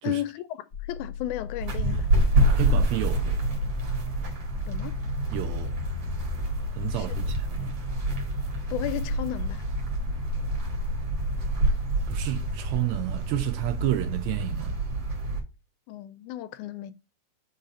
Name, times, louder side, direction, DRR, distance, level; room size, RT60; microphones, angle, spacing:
voice 1, 0.0-0.4 0.9-2.1 4.7-5.0 6.9-7.1 8.7-9.7 15.9-16.9, left 13 dB, 85° left, 2.0 m, -33 dB
sound 1, 0.7-11.9, left 8 dB, 60° left, 0.7 m, -38 dB
sound 2, 1.6-15.4, right 1 dB, 55° right, 2.7 m, -27 dB
voice 2, 2.5-3.4 5.3-5.8 6.7-7.7 12.1-14.7, right 14 dB, 80° right, 1.7 m, -30 dB
5.2 x 4.0 x 5.3 m
omnidirectional pair, 3.5 m